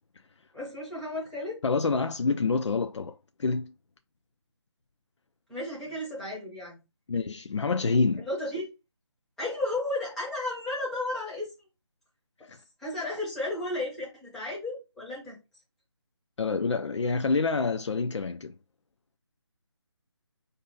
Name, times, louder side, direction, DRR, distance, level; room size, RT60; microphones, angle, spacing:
voice 1, 0.5-1.6 5.5-6.8 8.2-8.7 9.4-11.5 12.8-15.4, left 2 dB, ahead, 0.5 m, -33 dB
voice 2, 1.6-3.7 7.1-8.3 12.5-12.6 16.4-18.5, left 4 dB, 85° left, 0.4 m, -27 dB
4.0 x 2.7 x 3.7 m
figure-of-eight pair, 165°, 15 cm